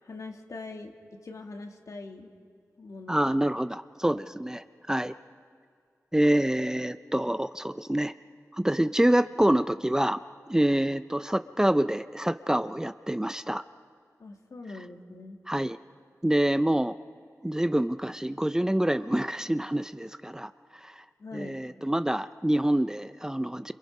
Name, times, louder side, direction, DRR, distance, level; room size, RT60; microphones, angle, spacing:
voice 1, 0.0-0.9 1.2-2.3 2.8-3.3 4.0-4.2 14.2-15.4 21.2-21.7, left 3 dB, 70° left, 3 dB, 2.2 m, -42 dB
voice 2, 3.1-5.1 6.1-8.1 8.6-10.2 10.5-13.6 15.5-15.8 16.2-17.0 17.4-20.5 20.8-21.0 21.3-23.7, right 1 dB, 10° right, 12 dB, 0.5 m, -26 dB
29.0 x 27.5 x 5.4 m, 2.2 s
wide cardioid pair, 75°, 6 cm